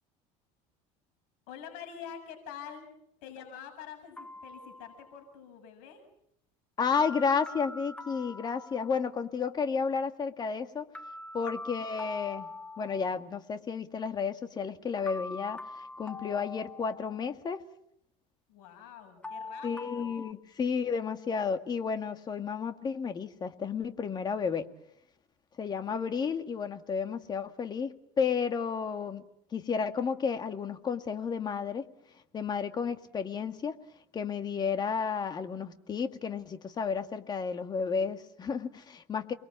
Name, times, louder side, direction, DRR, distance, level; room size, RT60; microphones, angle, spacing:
voice 1, 1.5-2.9 3.2-6.0 18.5-20.2, left 8 dB, 75° left, 4 dB, 7.2 m, -46 dB
sound 1, 4.2-5.3 6.9-9.2 10.9-13.3 15.1-17.4 19.2-20.3, left 3 dB, 10° left, 1.5 m, -43 dB
voice 2, 6.8-10.9 11.3-12.5 12.8-17.6 19.6-24.7 25.6-29.2 29.5-31.8 32.3-33.8 34.1-39.3, left 6 dB, 30° left, 8 dB, 2.1 m, -32 dB
30.0 x 22.0 x 7.4 m, 0.74 s
cardioid pair, 135°, 15 cm